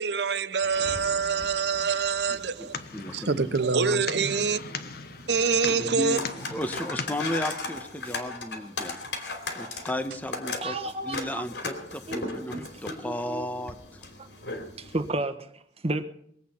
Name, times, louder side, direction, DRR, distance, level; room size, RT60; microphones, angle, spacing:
voice 1, 0.0-2.7 3.1-4.6 5.3-6.2, right 5 dB, 70° right, 0.7 m, -25 dB
sound 1, 0.6-15.1, left 3 dB, 75° left, 3.1 m, -38 dB
sound 2, 0.7-3.8, left 1 dB, 45° left, 2.1 m, -51 dB
sound 3, 2.3-7.3, left 5 dB, 60° left, 1.2 m, -39 dB
voice 2, 2.3-2.7 2.9-3.5 3.8-4.0 5.7-10.7 11.0-14.0, equal, 10° left, 1.2 m, -35 dB
voice 3, 10.6-11.4 12.1-12.2 13.0-13.4 14.2-14.3 14.8-16.0, right 2 dB, 35° right, 1.3 m, -32 dB
23.0 x 8.5 x 5.7 m
head